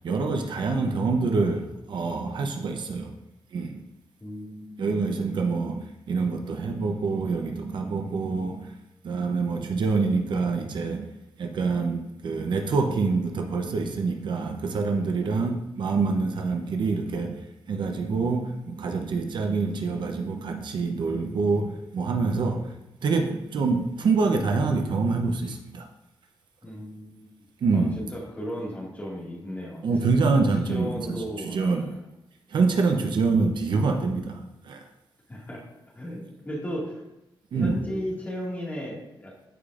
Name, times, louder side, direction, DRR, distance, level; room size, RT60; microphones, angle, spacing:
voice 1, 0.0-3.1 3.5-3.8 4.8-8.7 9.0-11.1 11.4-22.7 23.0-25.9 27.6-28.0 29.8-31.9 32.5-34.8 37.5-37.8, right 4 dB, 65° right, 4 dB, 0.8 m, -26 dB
voice 2, 4.2-4.9 15.1-15.5 26.6-27.3 27.7-29.8 30.7-32.0 35.3-35.6 36.0-37.0 37.5-39.5, equal, 20° left, -3 dB, 2.0 m, -35 dB
13.5 x 5.0 x 2.5 m, 0.92 s
wide cardioid pair, 165°, 9 cm